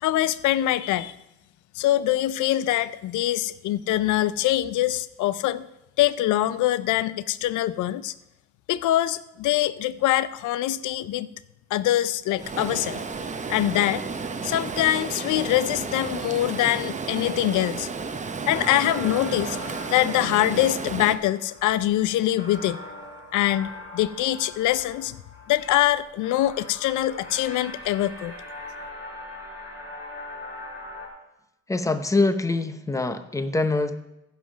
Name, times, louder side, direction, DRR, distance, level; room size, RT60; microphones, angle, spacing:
voice 1, 0.0-1.1 1.8-5.6 6.0-8.1 8.7-11.3 11.7-13.0 13.5-14.0 14.4-17.9 18.5-22.8 23.3-25.2 25.5-28.3, left 14 dB, 75° left, 17 dB, 0.5 m, -24 dB
Stream, 12.4-21.2, right 4 dB, 25° right, 0.7 m, -32 dB
sound 1, 18.3-31.1, left 1 dB, 40° left, 4.6 m, -42 dB
voice 2, 31.7-34.0, left 2 dB, 10° left, 10 dB, 0.8 m, -24 dB
15.0 x 5.7 x 5.0 m, 0.91 s
cardioid pair, 90°, 30 cm